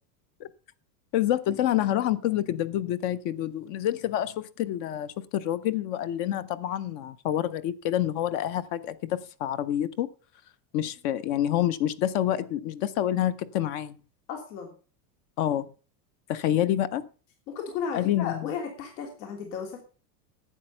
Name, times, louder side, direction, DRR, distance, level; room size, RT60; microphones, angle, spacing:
voice 1, 1.1-10.1 10.7-14.0 15.4-15.7 16.3-17.0 17.9-18.5, left 12 dB, 35° left, 16 dB, 0.5 m, -27 dB
voice 2, 14.3-14.7 17.5-19.8, left 7 dB, 80° left, 3 dB, 3.1 m, -34 dB
12.0 x 8.8 x 5.5 m, 0.37 s
supercardioid pair, 160°, 49 cm